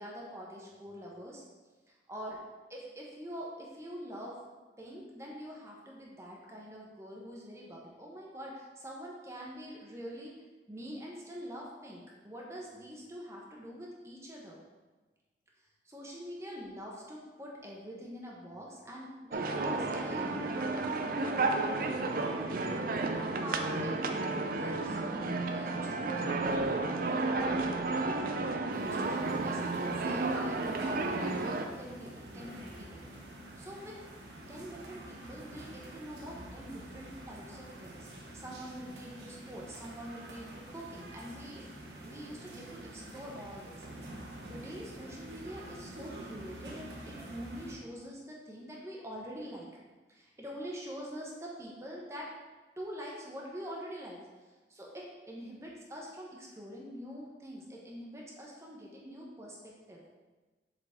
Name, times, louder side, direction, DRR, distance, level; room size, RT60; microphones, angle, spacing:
voice 1, 0.0-1.4 2.1-2.4 2.7-4.4 4.8-10.3 10.7-14.6 15.8-21.0 21.2-22.4 23.0-27.3 28.4-33.2 33.6-34.0 34.5-38.1 38.3-41.6 42.0-43.9 44.5-49.7 50.1-52.3 52.8-54.2 54.7-60.0, equal, 15° right, -3 dB, 0.9 m, -45 dB
sound 1, 19.3-31.7, right 3 dB, 50° right, 0.5 m, -32 dB
sound 2, 28.7-47.7, right 1 dB, 70° right, 1.0 m, -47 dB
7.1 x 3.8 x 3.5 m, 1.2 s
head